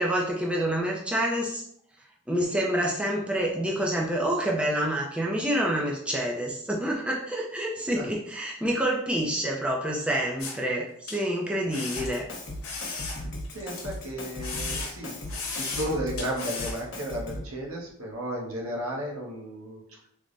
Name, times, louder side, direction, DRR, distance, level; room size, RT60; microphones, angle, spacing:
voice 1, 0.0-1.6 2.3-12.3, right 1 dB, 5° right, -2 dB, 0.4 m, -27 dB
sound 1, 10.4-10.6 11.1-11.2 11.7-12.1 12.6-14.0 14.4-15.0 15.3-15.9 16.2-16.8, left 4 dB, 80° left, 0.9 m, -35 dB
Drum kit, 12.0-17.6, left 1 dB, 55° left, 0.8 m, -38 dB
voice 2, 13.5-15.2 15.5-19.8, equal, 75° right, -1 dB, 0.9 m, -34 dB
3.3 x 2.1 x 3.8 m, 0.69 s
head